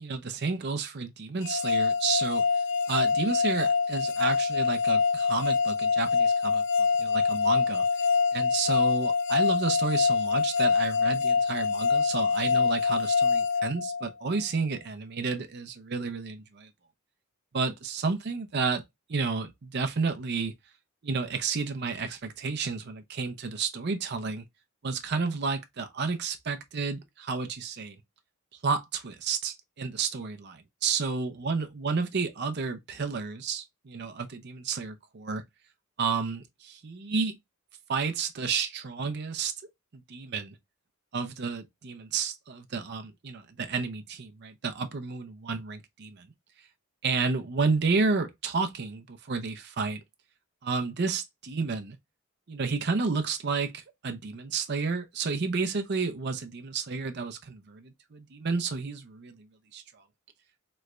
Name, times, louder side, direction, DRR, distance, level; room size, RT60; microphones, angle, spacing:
voice 1, 0.0-2.5 2.9-7.8 8.3-16.7 17.5-18.8 19.1-20.5 21.0-24.5 24.8-28.0 28.6-35.4 36.0-37.4 37.9-39.5 39.9-40.5 41.1-46.3 47.0-50.0 50.6-52.0 52.5-59.5 59.7-59.8, right 4 dB, 50° right, 0.6 m, -31 dB
sound 1, 1.4-14.4, left 5 dB, 55° left, 0.4 m, -25 dB
3.2 x 3.1 x 2.4 m
head